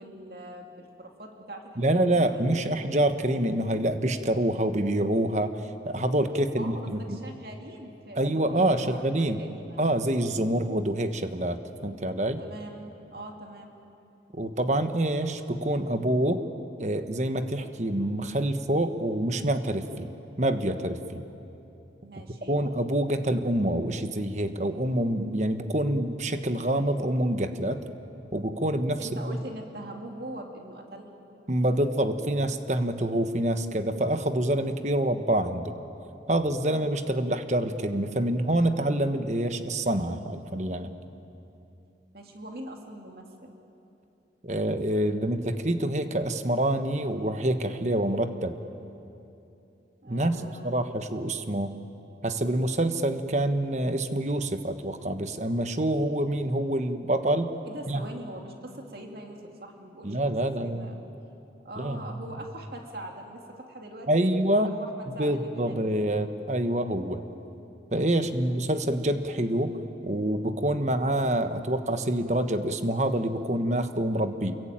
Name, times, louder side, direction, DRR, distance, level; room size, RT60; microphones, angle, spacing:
voice 1, 0.0-2.8 6.6-9.8 12.4-13.8 22.0-22.6 29.0-31.2 42.1-43.5 50.0-50.8 57.6-60.2 60.6-60.9 61.6-66.0 68.1-68.5, right 1 dB, 55° right, 2 dB, 2.6 m, -42 dB
voice 2, 1.8-7.2 8.2-9.4 9.8-12.4 14.3-16.4 16.8-20.1 20.4-21.2 22.5-27.8 28.3-29.0 31.5-35.7 36.3-40.9 44.4-48.5 50.1-51.7 52.2-57.5 57.9-58.0 60.0-60.9 61.8-62.0 64.1-64.8 65.1-67.2 67.9-74.6, right 1 dB, 40° right, 8 dB, 1.4 m, -26 dB
29.0 x 22.5 x 9.1 m, 2.8 s
head